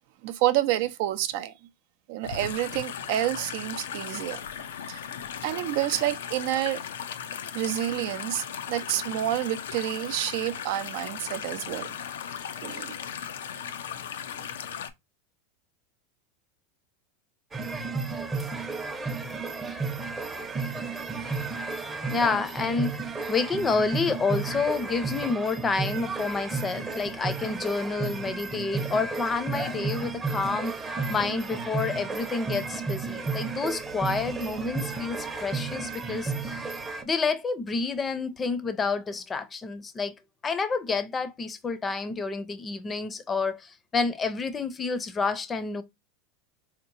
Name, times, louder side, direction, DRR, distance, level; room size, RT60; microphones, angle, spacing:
voice 1, 0.2-1.5 2.1-4.4 4.9-5.0 5.4-6.8 7.5-11.9 12.6-12.9, right 13 dB, 65° right, 0.5 m, -28 dB
sound 1, 2.2-14.9, left 8 dB, 90° left, 0.4 m, -37 dB
sound 2, 17.5-37.0, right 4 dB, 20° right, 0.7 m, -33 dB
voice 2, 21.7-36.7 37.0-40.1 40.4-45.8, left 4 dB, 20° left, 0.6 m, -29 dB
4.2 x 2.9 x 2.5 m
supercardioid pair, 115°, 0 cm